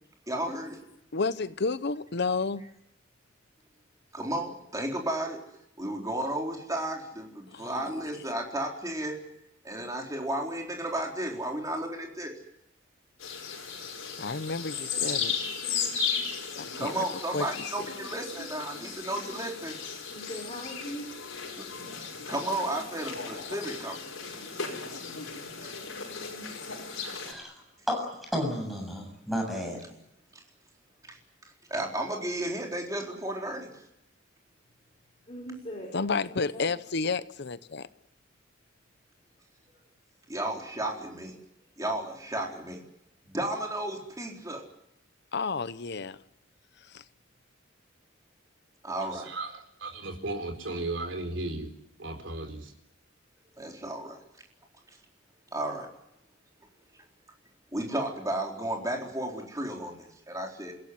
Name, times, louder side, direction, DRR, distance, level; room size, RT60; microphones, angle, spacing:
voice 1, 0.3-0.8 4.1-5.4 5.8-9.2 9.6-12.3 16.8-19.8 21.6-21.7 22.3-24.1 25.6-25.7 30.3-30.4 31.1-31.2 31.4-33.7 40.3-41.4 41.8-42.8 43.3-44.6 48.8-49.3 53.6-54.2 55.5-55.9 57.7-60.7, right 1 dB, 15° right, 1 dB, 4.2 m, -33 dB
voice 2, 1.1-2.7 7.5-7.8 9.8-9.9 14.2-15.4 16.8-17.0 17.3-17.7 35.9-37.9 45.3-46.2 46.9-47.0, left 4 dB, 55° left, 15 dB, 0.8 m, -31 dB
sound 1, 13.2-27.3, left 6 dB, 90° left, 5.4 m, -36 dB
voice 3, 20.1-21.0 35.3-35.9 36.3-36.7, equal, 30° left, -1 dB, 5.0 m, -40 dB
voice 4, 27.9-29.8, equal, ahead, 2 dB, 7.6 m, -32 dB
voice 5, 49.1-51.7 52.0-52.7, right 2 dB, 65° right, 5 dB, 4.3 m, -35 dB
28.0 x 16.5 x 9.6 m, 0.82 s
head